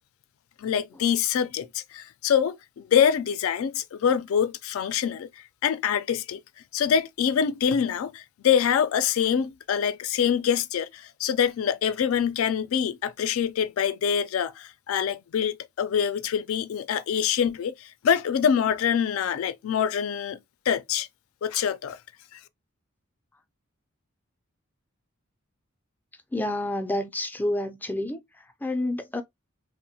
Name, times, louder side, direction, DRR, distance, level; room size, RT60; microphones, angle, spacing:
voice 1, 0.6-5.3 5.6-6.4 6.7-20.4 20.7-21.1 21.4-22.0 22.3-22.4, left 8 dB, 85° left, 0.3 m, -25 dB
voice 2, 26.3-29.2, left 1 dB, 10° left, 0.3 m, -29 dB
3.0 x 2.1 x 2.7 m
head